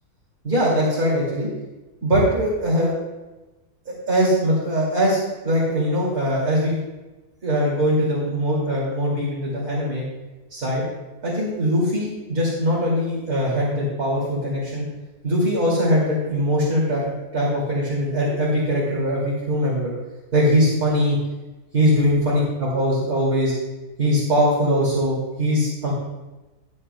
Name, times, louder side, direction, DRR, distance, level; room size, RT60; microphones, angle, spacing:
voice 1, 0.4-1.5 2.0-2.9 3.9-6.8 7.4-10.1 10.5-10.8 11.2-14.8 15.2-19.9 20.3-21.2 21.7-23.5 24.0-25.9, equal, 75° right, -5 dB, 2.9 m, -21 dB
14.0 x 11.5 x 2.2 m, 1.1 s
omnidirectional pair, 1.6 m